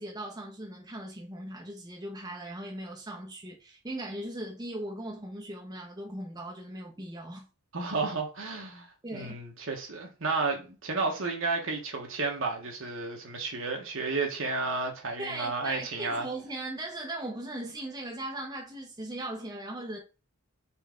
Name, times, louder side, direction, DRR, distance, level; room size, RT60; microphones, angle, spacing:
voice 1, 0.0-7.5 9.0-9.3 15.2-20.0, right 1 dB, 15° right, 0.7 m, -38 dB
voice 2, 7.7-16.3, right 3 dB, 60° right, 1.2 m, -32 dB
4.4 x 3.2 x 3.6 m
head